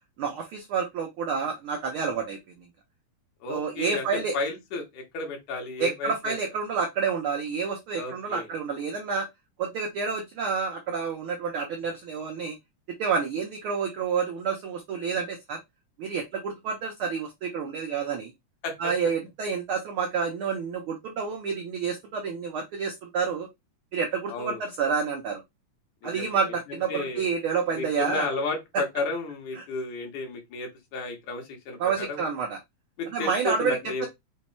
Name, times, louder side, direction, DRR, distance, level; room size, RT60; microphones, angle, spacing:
voice 1, 0.2-2.4 3.5-4.4 5.8-9.3 9.6-12.6 13.0-15.6 16.0-18.3 18.8-23.5 23.9-25.4 26.0-28.3 28.7-28.8 29.5-29.6 31.8-32.6 33.1-34.1, right 5 dB, 80° right, 1.2 m, -29 dB
voice 2, 3.4-6.4 8.0-8.5 18.6-18.9 24.3-24.6 26.0-26.4 26.7-27.3 27.7-32.2 33.0-34.1, left 3 dB, 85° left, 2.8 m, -33 dB
5.8 x 2.2 x 4.2 m
omnidirectional pair, 3.4 m